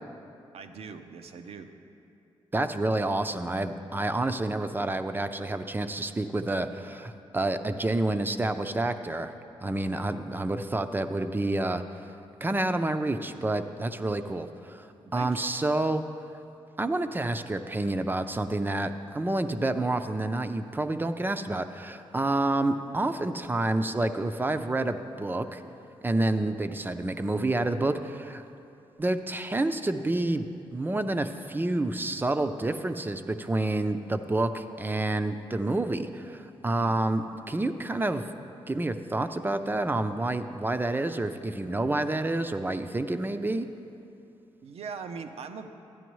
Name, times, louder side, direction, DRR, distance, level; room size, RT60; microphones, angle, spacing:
voice 1, 0.5-1.7 15.0-15.5 36.8-37.0 44.6-45.7, right 5 dB, 75° right, 7 dB, 0.6 m, -41 dB
voice 2, 2.5-9.3 9.6-12.0 12.4-14.9 15.1-16.0 16.8-25.6 26.0-28.4 29.0-38.2 38.7-43.7, right 2 dB, 20° right, 8 dB, 0.5 m, -29 dB
12.5 x 9.3 x 3.1 m, 2.7 s
cardioid pair, 65°, 10 cm